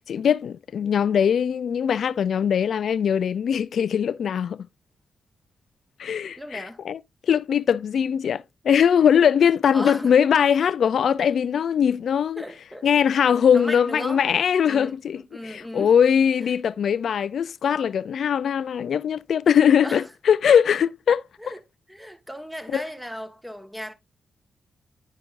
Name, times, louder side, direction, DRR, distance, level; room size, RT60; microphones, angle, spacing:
voice 1, 0.1-4.7 6.0-7.0 7.3-12.4 12.8-21.2 22.7-22.8, left 8 dB, 75° left, 0.3 m, -21 dB
voice 2, 6.4-6.8 9.7-10.1 12.4-12.9 13.5-14.3 14.6-16.0 16.4-16.5 19.8-20.1 21.4-21.6 21.9-23.9, equal, 5° right, 1.3 m, -36 dB
9.9 x 5.2 x 2.5 m
cardioid pair, 60°, 0 cm